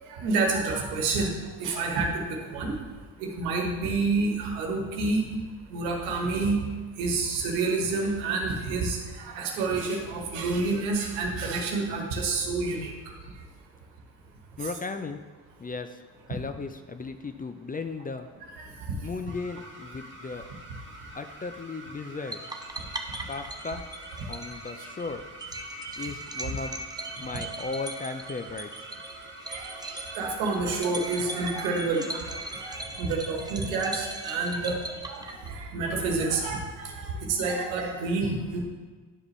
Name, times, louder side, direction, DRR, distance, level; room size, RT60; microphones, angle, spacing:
voice 1, 0.1-1.3 1.6-2.8 3.2-5.3 5.7-6.6 7.0-12.9 18.6-18.7 29.5-32.2 32.5-34.8 35.1-38.6, right 3 dB, 90° right, 1 dB, 1.3 m, -28 dB
voice 2, 14.6-15.2 15.6-16.0 16.3-18.3 19.0-20.5 21.1-22.4 23.3-23.8 24.3-25.2 26.0-26.9 27.2-28.7, left 4 dB, 20° left, 8 dB, 0.4 m, -36 dB
sound 1, 19.3-32.8, right 1 dB, 25° right, 1.4 m, -47 dB
sound 2, 22.3-35.8, right 2 dB, 10° right, 0.7 m, -39 dB
10.5 x 4.9 x 3.2 m, 1.4 s
supercardioid pair, 65°, 44 cm